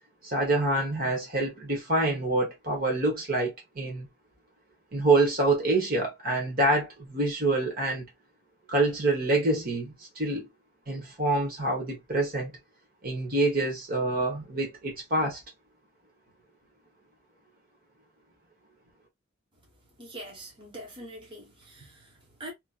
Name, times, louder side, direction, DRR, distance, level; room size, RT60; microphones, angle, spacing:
voice 1, 0.2-4.1 4.9-8.0 8.7-10.5 10.9-12.5 13.0-15.4, right 2 dB, 50° right, 1.2 m, -26 dB
voice 2, 20.0-22.5, right 1 dB, 25° right, 1.2 m, -44 dB
3.0 x 2.7 x 2.4 m
head